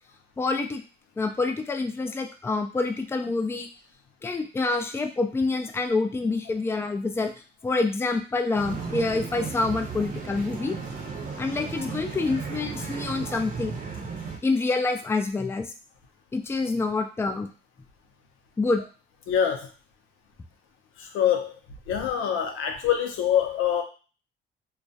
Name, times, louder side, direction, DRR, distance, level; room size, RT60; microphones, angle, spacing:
voice 1, 0.4-0.8 1.2-3.7 4.2-7.3 7.6-10.8 11.4-13.7 14.0-14.1 14.4-15.7 16.3-17.5 18.6-18.8, left 3 dB, 10° left, 6 dB, 0.3 m, -27 dB
sound 1, 8.5-14.4, right 5 dB, 45° right, 0.6 m, -35 dB
voice 2, 19.3-19.7 21.1-21.5 21.9-23.8, left 9 dB, 90° left, 4 dB, 0.5 m, -24 dB
2.3 x 2.0 x 2.6 m, 0.35 s
cardioid pair, 90°, 20 cm